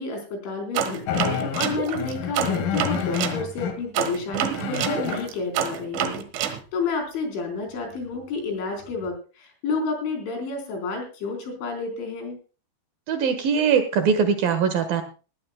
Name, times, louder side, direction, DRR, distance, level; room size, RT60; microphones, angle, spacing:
voice 1, 0.0-12.4, left 4 dB, 85° left, 4 dB, 6.5 m, -30 dB
sound 1, 0.7-3.4 3.9-6.6, right 9 dB, 90° right, 4.0 m, -27 dB
sound 2, 1.1-3.8 4.3-5.3 8.1-8.2 8.8-9.1, left 7 dB, 60° left, 3.1 m, -29 dB
voice 2, 13.1-15.0, right 6 dB, 65° right, 9 dB, 2.6 m, -21 dB
20.0 x 15.0 x 2.3 m, 0.34 s
omnidirectional pair, 5.3 m